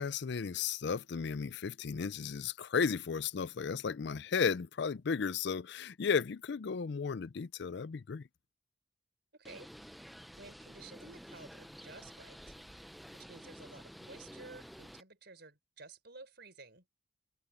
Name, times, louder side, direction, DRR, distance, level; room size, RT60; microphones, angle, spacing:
voice 1, 0.0-8.2, left 6 dB, 60° left, 0.4 m, -34 dB
voice 2, 9.3-10.1 10.4-12.5 13.1-16.8, right 3 dB, 55° right, 5.4 m, -53 dB
Bird, 9.4-15.0, equal, ahead, 0.5 m, -51 dB
head